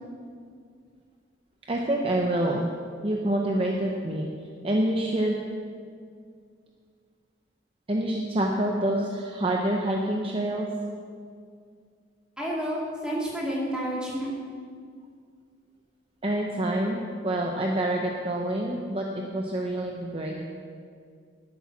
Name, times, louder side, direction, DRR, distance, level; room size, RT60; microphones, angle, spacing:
voice 1, 1.7-2.7 3.0-4.3 4.6-5.4 7.9-10.7 16.2-20.4, right 1 dB, 30° right, 0 dB, 0.8 m, -27 dB
voice 2, 12.4-14.4, equal, 5° right, -6 dB, 2.5 m, -30 dB
11.0 x 8.7 x 6.0 m, 2.2 s
head